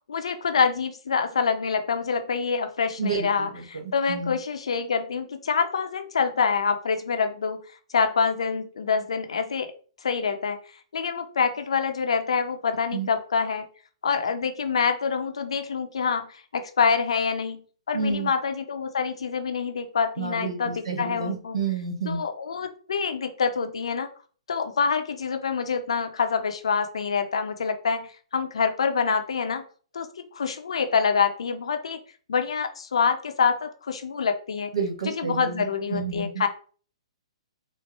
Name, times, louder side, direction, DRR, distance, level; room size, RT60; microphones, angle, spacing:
voice 1, 0.1-7.6 7.9-9.7 10.0-10.6 10.9-13.7 14.0-21.6 22.0-24.1 24.5-29.6 29.9-30.1 30.3-32.0 32.3-34.7 35.2-36.5, left 5 dB, 70° left, 7 dB, 0.6 m, -26 dB
voice 2, 3.0-4.3 12.9-13.1 17.9-18.3 20.2-22.2 34.7-36.4, right 5 dB, 70° right, 3 dB, 1.2 m, -30 dB
4.4 x 2.0 x 3.3 m, 0.41 s
figure-of-eight pair, 120°, 3 cm